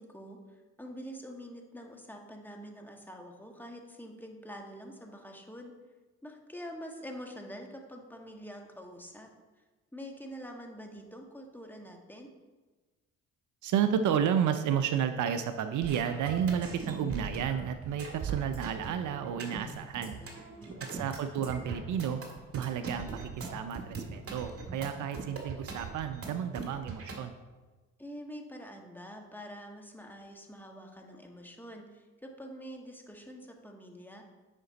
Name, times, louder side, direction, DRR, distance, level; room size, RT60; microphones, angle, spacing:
voice 1, 0.0-5.7 6.2-9.3 9.9-12.3 20.6-21.1 28.0-34.2, equal, 5° left, 2 dB, 1.5 m, -46 dB
voice 2, 13.6-20.2 20.8-22.2 22.5-27.3, right 8 dB, 60° right, 9 dB, 0.6 m, -31 dB
sound 1, 15.8-27.2, right 4 dB, 40° right, 2.1 m, -40 dB
9.8 x 5.1 x 4.0 m, 1.3 s
hypercardioid pair, 60°, 34 cm